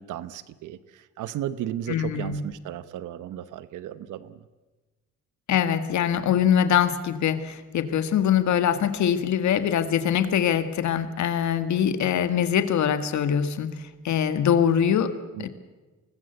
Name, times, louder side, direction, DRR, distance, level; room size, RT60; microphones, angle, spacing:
voice 1, 0.0-4.4 15.3-15.5, right 11 dB, 85° right, 14 dB, 1.0 m, -35 dB
voice 2, 1.9-2.4 5.5-13.8 14.0-15.1 15.4-15.5, left 9 dB, 70° left, 10 dB, 1.9 m, -23 dB
24.5 x 19.5 x 8.1 m, 1.2 s
cardioid pair, 90°, 30 cm